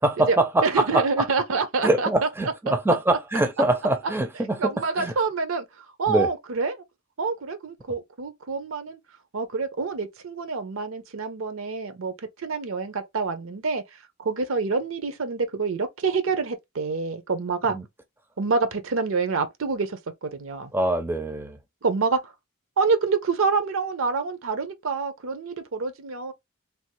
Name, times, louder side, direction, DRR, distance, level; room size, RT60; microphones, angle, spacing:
voice 1, 0.0-1.3 1.8-5.1 6.1-6.3 17.7-17.8 20.7-21.6, right 1 dB, 10° right, 0.4 m, -24 dB
voice 2, 0.6-2.1 2.4-2.5 4.6-5.7 6.0-6.8 7.2-9.0 9.3-12.1 12.4-13.8 14.2-17.8 18.4-20.7 21.8-22.3 22.8-26.3, right 4 dB, 70° right, 0.6 m, -27 dB
3.4 x 2.4 x 3.0 m
head